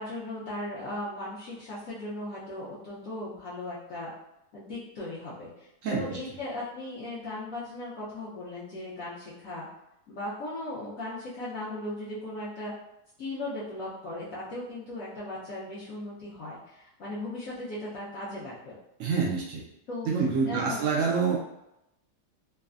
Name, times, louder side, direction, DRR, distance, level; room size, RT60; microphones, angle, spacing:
voice 1, 0.0-4.1 4.5-9.7 10.1-12.7 13.2-18.8 19.9-20.1 20.4-20.8, left 1 dB, 65° left, -9 dB, 1.0 m, -37 dB
voice 2, 5.8-6.2 19.0-19.7 20.0-21.4, right 5 dB, 70° right, -3 dB, 0.7 m, -27 dB
3.2 x 2.0 x 2.3 m, 0.84 s
omnidirectional pair, 1.8 m